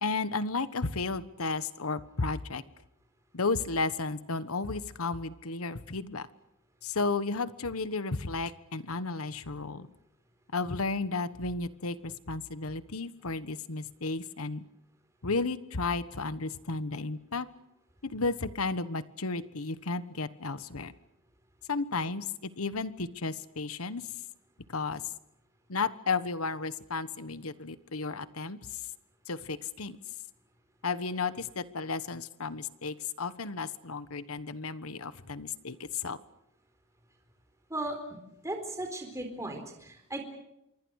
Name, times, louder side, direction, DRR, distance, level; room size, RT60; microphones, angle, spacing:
voice 1, 0.0-2.6 3.3-6.3 6.8-9.9 10.5-14.6 15.2-17.5 18.0-20.9 21.7-24.0 24.7-25.0 25.7-28.6 29.3-30.0 30.8-36.2, left 3 dB, 85° left, 14 dB, 1.3 m, -33 dB
voice 2, 38.4-40.2, right 1 dB, 15° right, 4 dB, 4.1 m, -36 dB
26.0 x 23.5 x 6.5 m, 0.86 s
head